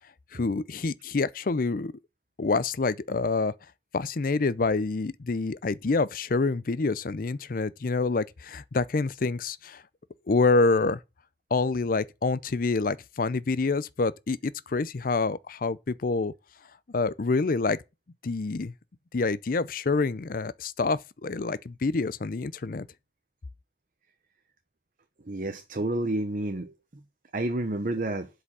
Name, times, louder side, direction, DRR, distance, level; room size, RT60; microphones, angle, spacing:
voice 1, 0.3-1.9 2.4-3.5 3.9-9.8 10.3-11.0 11.5-16.3 16.9-17.8 18.2-18.7 19.1-22.9, left 3 dB, 50° left, 0.5 m, -27 dB
voice 2, 25.3-26.7 27.3-28.3, right 1 dB, 50° right, 0.9 m, -29 dB
8.1 x 5.1 x 7.3 m
head